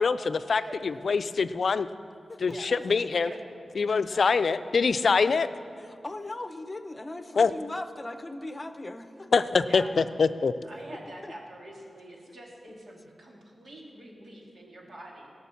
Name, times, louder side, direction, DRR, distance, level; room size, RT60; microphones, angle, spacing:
voice 1, 0.0-1.9 2.4-3.3 3.8-5.5 7.4-7.5 9.3-10.5, left 5 dB, 70° left, 13 dB, 0.4 m, -24 dB
voice 2, 4.1-4.4 9.6-9.9 10.6-15.3, right 1 dB, 60° right, -2 dB, 2.5 m, -45 dB
voice 3, 5.8-9.7 11.2-11.3 12.3-12.4, left 2 dB, 30° left, 9 dB, 0.8 m, -39 dB
16.5 x 6.5 x 7.0 m, 2.4 s
cardioid pair, 60°, 0 cm